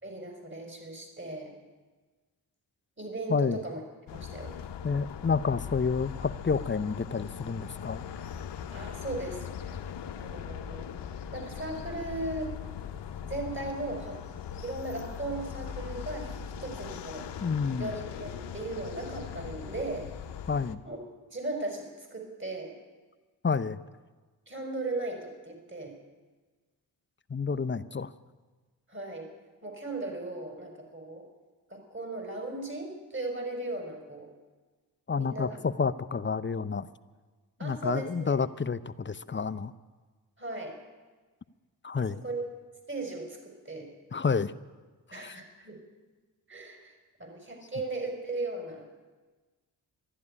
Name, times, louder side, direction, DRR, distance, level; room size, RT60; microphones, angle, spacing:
voice 1, 0.0-1.6 3.0-3.8 4.1-4.6 8.7-9.8 10.2-10.9 11.3-12.5 13.2-14.2 14.6-17.4 17.7-20.1 20.8-21.0 21.3-22.7 24.5-26.0 27.5-27.8 28.9-29.3 29.6-31.3 31.7-34.3 35.2-35.6 37.6-38.3 40.4-40.8 42.0-42.4 42.9-43.9 45.1-45.8 46.5-46.9 47.2-48.8, right 2 dB, 25° right, 2 dB, 4.8 m, -37 dB
sound 1, 4.1-20.8, left 8 dB, 70° left, 0.9 m, -40 dB
voice 2, 4.8-8.0 17.4-17.9 20.5-20.8 23.4-23.8 27.3-28.1 35.1-36.9 37.6-39.7 41.8-42.2 44.1-44.5 45.1-45.4, left 5 dB, 25° left, 14 dB, 0.7 m, -29 dB
12.5 x 11.5 x 9.8 m, 1.3 s
supercardioid pair, 45°, 43 cm